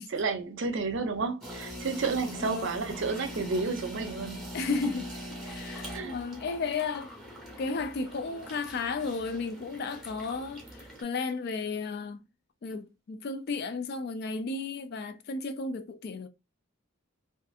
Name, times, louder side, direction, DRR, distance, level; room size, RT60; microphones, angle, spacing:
voice 1, 0.1-4.4 5.9-6.1, right 4 dB, 60° right, 0.5 m, -31 dB
sound 1, 1.4-11.0, equal, ahead, 0.8 m, -42 dB
voice 2, 2.4-2.7 4.5-5.1 5.4-7.1 7.6-12.2 12.6-16.3, left 4 dB, 50° left, 0.3 m, -33 dB
2.5 x 2.5 x 2.4 m
head